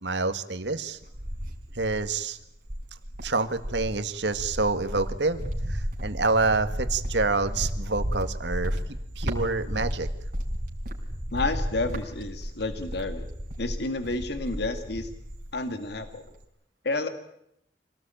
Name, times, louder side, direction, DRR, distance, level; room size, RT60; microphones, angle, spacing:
voice 1, 0.0-1.0 1.8-2.4 3.2-5.4 5.7-8.8 9.2-10.1, right 3 dB, 75° right, 9 dB, 1.9 m, -27 dB
Cricket, 0.6-2.2 2.6-15.6 15.9-16.4, equal, 55° right, 4.5 m, -33 dB
voice 2, 11.3-13.3 13.6-15.1 15.5-16.2 16.8-17.1, left 2 dB, 65° left, 8 dB, 2.0 m, -30 dB
26.5 x 18.5 x 9.0 m, 0.79 s
head